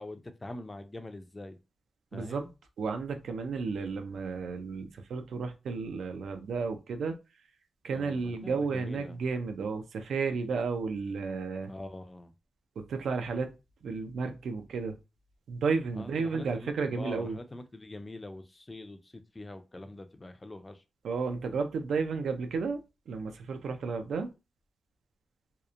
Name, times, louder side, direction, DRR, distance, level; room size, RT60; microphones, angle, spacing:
voice 1, 0.0-1.6 2.1-2.5 7.9-9.2 11.6-12.3 15.9-20.8, left 2 dB, 20° left, 0.4 m, -44 dB
voice 2, 2.1-2.4 2.8-7.2 7.8-11.7 12.8-13.5 13.8-15.0 15.5-17.4 21.0-22.8 23.1-24.3, right 4 dB, 90° right, 0.4 m, -32 dB
2.8 x 2.1 x 2.4 m
wide cardioid pair, 120°, 0 cm